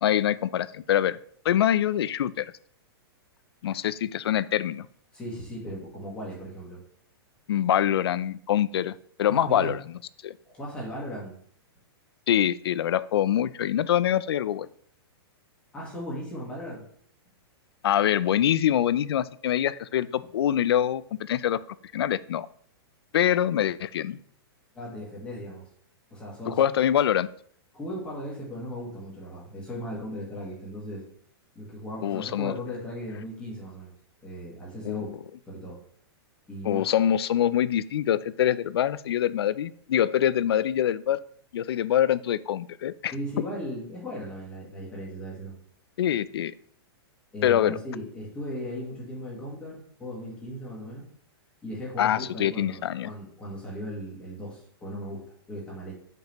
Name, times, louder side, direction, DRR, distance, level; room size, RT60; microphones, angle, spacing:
voice 1, 0.0-1.2 1.4-2.5 3.6-4.9 7.5-9.8 10.2-10.3 12.3-14.7 17.8-21.6 21.9-22.5 23.1-24.2 26.5-27.3 32.0-32.5 34.8-35.2 36.6-41.2 41.5-43.1 46.0-46.5 47.4-47.8 52.0-53.1, left 10 dB, 75° left, 17 dB, 0.4 m, -24 dB
voice 2, 5.1-6.8 9.3-9.7 10.4-11.4 15.7-16.8 24.7-25.6 26.1-26.6 27.7-31.0 31.5-33.9 34.2-35.1 35.5-35.8 36.5-37.0 43.1-45.5 47.3-51.1 51.6-55.9, equal, 10° left, -5 dB, 1.6 m, -37 dB
7.8 x 5.3 x 3.0 m, 0.62 s
hypercardioid pair, 175°, 13 cm